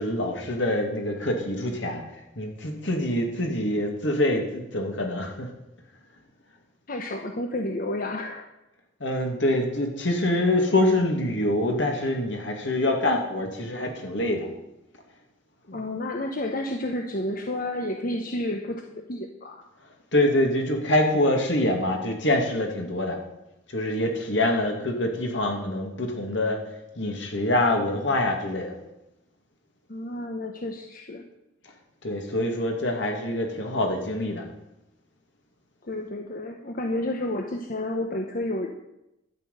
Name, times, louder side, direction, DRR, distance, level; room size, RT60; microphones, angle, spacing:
voice 1, 0.0-2.0 2.4-5.5 9.0-14.5 15.7-15.8 20.1-23.2 23.7-26.6 27.0-28.7 32.0-34.4, left 1 dB, 70° left, 2 dB, 2.6 m, -25 dB
voice 2, 6.9-8.5 15.7-19.6 29.9-31.3 35.8-38.7, left 1 dB, 50° left, 4 dB, 1.0 m, -31 dB
12.0 x 6.1 x 9.1 m, 0.90 s
head